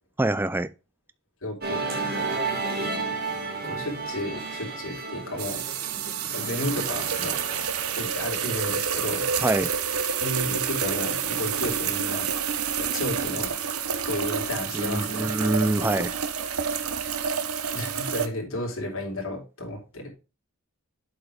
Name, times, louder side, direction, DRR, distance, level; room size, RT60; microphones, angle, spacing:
voice 1, 0.2-0.7 9.4-9.7 14.7-16.1, right 2 dB, 10° right, 0.3 m, -25 dB
voice 2, 1.4-1.8 3.6-5.6 6.2-7.4 8.0-9.3 10.2-12.3 12.8-13.6 14.1-15.3 15.9-16.1 17.7-20.1, left 1 dB, 65° left, 3.5 m, -32 dB
Musical instrument, 1.6-8.1, right 3 dB, 45° right, 2.8 m, -32 dB
sound 1, 5.4-18.3, right 7 dB, 80° right, 1.0 m, -29 dB
7.8 x 4.9 x 5.0 m
head